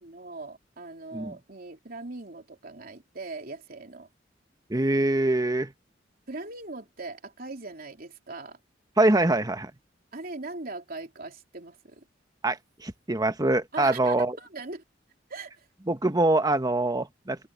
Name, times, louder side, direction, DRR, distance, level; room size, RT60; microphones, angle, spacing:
voice 1, 0.0-4.1 6.3-8.6 10.1-12.0 13.7-14.8 15.3-15.6, right 3 dB, 50° right, 3.4 m, -40 dB
voice 2, 4.7-5.7 9.0-9.7 12.4-14.4 15.9-17.4, right 2 dB, 20° right, 1.3 m, -24 dB
open air
head